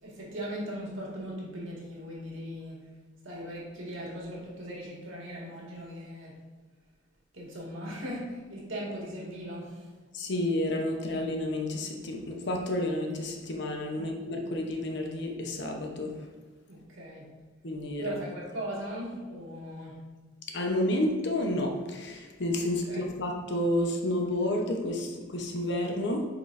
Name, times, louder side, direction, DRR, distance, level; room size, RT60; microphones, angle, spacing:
voice 1, 0.0-2.8 3.2-6.4 7.3-9.9 13.9-14.1 16.7-17.3 18.0-20.0 22.9-23.0, equal, 90° right, -4 dB, 1.9 m, -39 dB
voice 2, 10.1-16.1 17.6-18.1 20.5-26.3, left 1 dB, 60° left, 2 dB, 0.9 m, -30 dB
8.2 x 4.5 x 2.6 m, 1.3 s
head